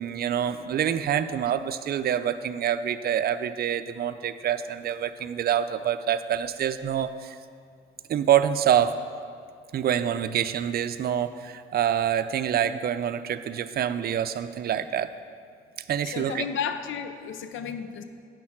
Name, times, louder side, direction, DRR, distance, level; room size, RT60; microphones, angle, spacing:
voice 1, 0.0-7.4 8.1-9.0 9.7-15.1 15.9-16.4, right 9 dB, 50° right, 11 dB, 0.5 m, -26 dB
voice 2, 16.1-18.0, left 7 dB, 75° left, 10 dB, 0.6 m, -32 dB
8.3 x 6.3 x 5.8 m, 2.2 s
cardioid pair, 90°, 20 cm